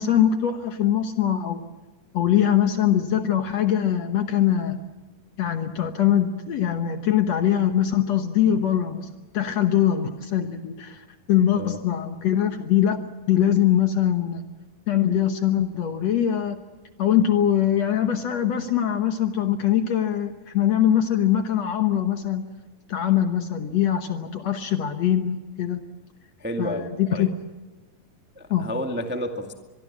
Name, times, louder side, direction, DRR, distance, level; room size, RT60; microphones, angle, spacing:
voice 1, 0.0-1.6 2.1-4.8 5.4-13.0 13.3-14.4 14.9-16.6 17.0-22.5 22.9-25.9 26.6-27.3 28.5-28.7, left 10 dB, 60° left, 7 dB, 1.9 m, -22 dB
voice 2, 26.4-27.3 28.3-29.5, equal, 5° right, 4 dB, 1.1 m, -31 dB
24.5 x 22.5 x 7.3 m, 1.3 s
omnidirectional pair, 4.0 m